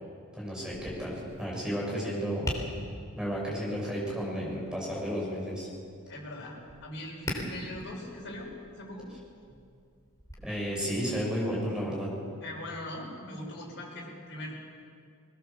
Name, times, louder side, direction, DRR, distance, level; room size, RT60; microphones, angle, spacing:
voice 1, 0.3-2.5 3.2-5.7 10.4-12.1, equal, 5° right, -4 dB, 6.9 m, -32 dB
Tap, 0.7-10.3, equal, 15° left, 3.5 m, -43 dB
voice 2, 6.1-9.1 12.4-14.5, left 1 dB, 55° left, -1 dB, 5.7 m, -41 dB
22.0 x 20.0 x 7.3 m, 2.2 s
head